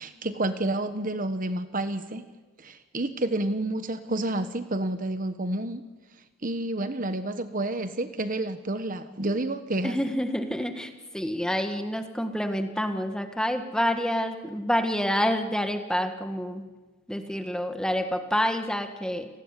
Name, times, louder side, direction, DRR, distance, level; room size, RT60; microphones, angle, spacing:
voice 1, 0.0-2.2 2.6-5.8 6.4-10.0, right 2 dB, 35° right, 10 dB, 1.2 m, -29 dB
voice 2, 9.8-16.7 17.1-19.3, equal, 5° left, 6 dB, 1.7 m, -28 dB
29.5 x 19.5 x 9.9 m, 1.3 s
head